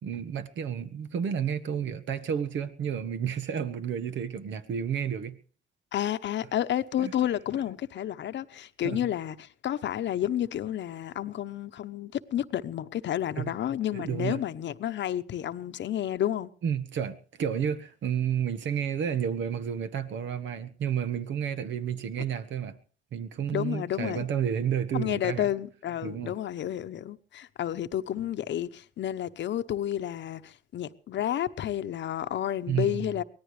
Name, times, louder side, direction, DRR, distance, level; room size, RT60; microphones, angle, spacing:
voice 1, 0.0-5.4 7.0-7.1 8.8-9.0 13.4-13.5 13.9-14.4 16.6-22.8 23.1-25.5 26.0-26.3 32.7-33.1, right 8 dB, 70° right, 1.5 m, -31 dB
voice 2, 5.9-16.5 23.5-24.3 24.9-33.2, left 11 dB, 65° left, 1.0 m, -31 dB
24.0 x 18.0 x 3.3 m
cardioid pair, 90°, 20 cm